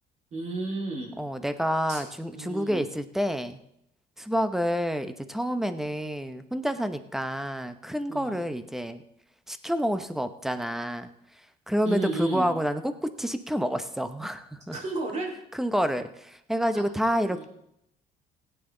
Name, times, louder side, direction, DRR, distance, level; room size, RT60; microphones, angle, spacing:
voice 1, 0.3-1.1 1.9-2.0 2.3-2.8 8.1-8.4 11.8-12.5 14.7-15.3 16.7-16.8 17.3-17.5, right 2 dB, 40° right, -1 dB, 3.9 m, -32 dB
voice 2, 1.2-3.6 4.2-9.0 9.5-11.1 11.7-14.8 15.5-17.4, equal, ahead, 10 dB, 0.9 m, -28 dB
17.0 x 9.4 x 3.9 m, 0.78 s
cardioid pair, 110°, 17 cm